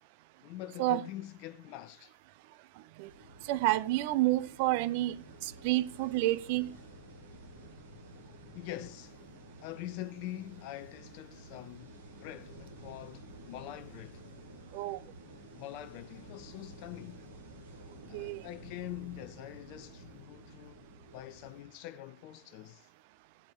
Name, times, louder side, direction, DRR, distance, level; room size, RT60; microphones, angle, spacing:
voice 1, 0.4-2.1 8.5-9.2 9.6-14.2 15.5-17.2 18.1-20.8 21.1-22.9, left 14 dB, 45° left, 0.7 m, -44 dB
sound 1, 3.0-21.6, right 1 dB, 65° right, 7.3 m, -52 dB
voice 2, 3.5-5.2 5.4-6.7 14.7-15.0 18.1-18.4, right 17 dB, 45° right, 0.8 m, -29 dB
16.5 x 8.3 x 4.7 m
figure-of-eight pair, 90°, 0 cm